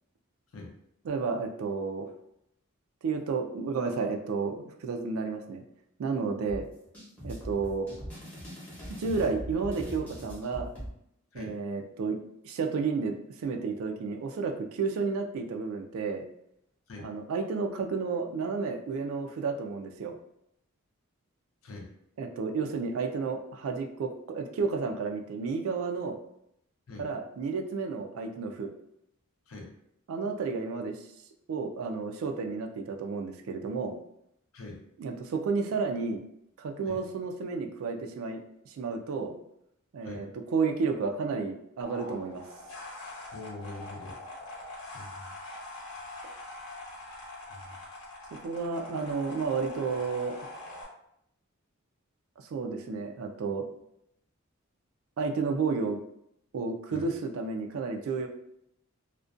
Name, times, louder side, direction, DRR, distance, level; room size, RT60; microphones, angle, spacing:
voice 1, 1.0-2.1 3.0-5.6 6.0-6.7 7.2-7.9 9.0-10.7 11.3-12.2 12.4-16.2 17.0-20.2 22.2-26.2 27.0-28.7 30.1-31.0 31.5-34.0 35.0-36.2 36.6-39.3 39.9-42.4 48.4-50.4 52.4-53.7 55.2-56.0 56.5-58.3, right 4 dB, 75° right, 4 dB, 0.3 m, -31 dB
sound 1, 6.5-10.9, equal, 5° left, 0.7 m, -41 dB
sound 2, 41.8-50.8, left 2 dB, 85° left, 0.9 m, -43 dB
voice 2, 43.3-44.2 44.9-45.3 47.5-47.8 56.9-57.1, left 2 dB, 70° left, -1 dB, 0.5 m, -43 dB
2.4 x 2.1 x 2.4 m, 0.76 s
head